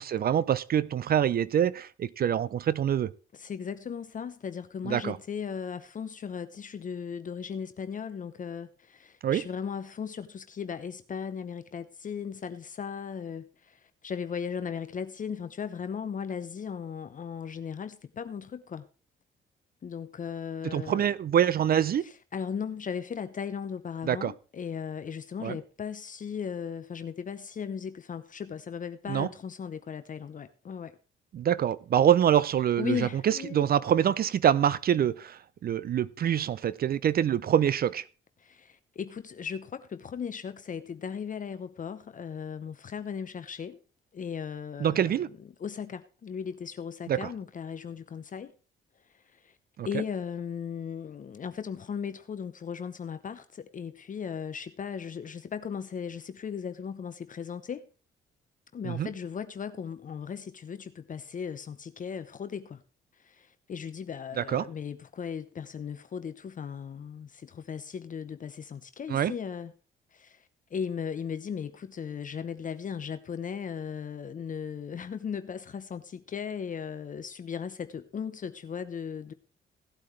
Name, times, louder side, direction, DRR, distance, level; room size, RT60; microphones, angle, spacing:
voice 1, 0.0-3.1 4.8-5.2 9.2-9.4 20.6-22.0 24.0-24.3 25.4-25.6 29.1-29.3 31.3-38.0 44.8-45.3 47.1-47.3 49.8-50.0 58.8-59.1 64.4-64.7 69.1-69.3, right 9 dB, 50° right, 0.5 m, -25 dB
voice 2, 3.3-18.9 19.8-21.1 22.3-30.9 32.8-33.7 38.4-43.8 44.1-45.2 45.6-48.5 49.1-49.5 49.8-57.9 58.7-62.8 63.2-69.7 70.1-70.4 70.7-79.3, left 7 dB, 40° left, 0.8 m, -37 dB
16.5 x 8.5 x 3.2 m
cardioid pair, 90°, 20 cm